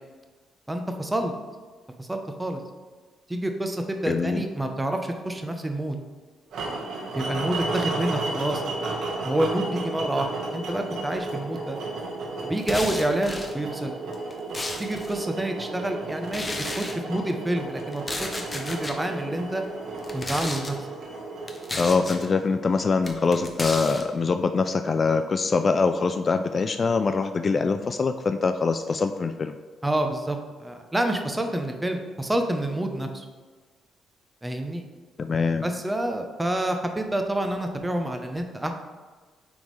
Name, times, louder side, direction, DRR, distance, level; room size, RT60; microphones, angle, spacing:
voice 1, 0.7-1.3 2.0-2.6 3.3-6.0 7.1-8.9 9.2-11.8 12.4-14.0 14.8-19.6 20.1-20.8 29.8-33.2 34.4-34.8 35.6-38.7, right 1 dB, 10° right, 5 dB, 0.8 m, -28 dB
voice 2, 4.1-4.4 21.8-29.6 35.2-35.7, left 4 dB, 40° left, 8 dB, 0.3 m, -24 dB
sound 1, 6.5-22.6, right 2 dB, 70° right, 1.3 m, -33 dB
sound 2, 12.6-13.5 14.1-15.2 16.3-17.0 17.9-19.0 20.0-20.7 21.5-22.3 23.0-24.0, left 2 dB, 20° left, 0.8 m, -33 dB
9.1 x 3.6 x 3.2 m, 1.4 s
cardioid pair, 90°, 0 cm